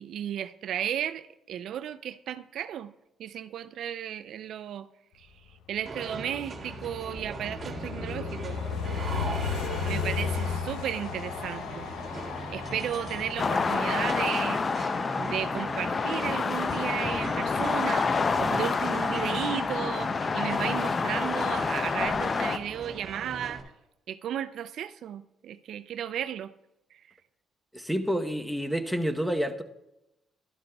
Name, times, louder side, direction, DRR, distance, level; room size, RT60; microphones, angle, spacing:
voice 1, 0.0-2.9 3.2-4.9 5.1-5.3 5.7-8.6 9.8-11.9 12.5-14.6 15.2-23.6 24.1-26.5 26.9-27.0, right 10 dB, 75° right, 12 dB, 0.3 m, -34 dB
Train, 5.8-14.2, left 6 dB, 90° left, 0.6 m, -34 dB
sound 1, 5.9-23.6, right 3 dB, 40° right, 1.7 m, -40 dB
sound 2, 13.4-22.6, left 4 dB, 40° left, 0.4 m, -28 dB
voice 2, 27.7-29.6, equal, ahead, 8 dB, 0.8 m, -29 dB
12.0 x 11.5 x 2.2 m, 0.91 s
cardioid pair, 90°, 0 cm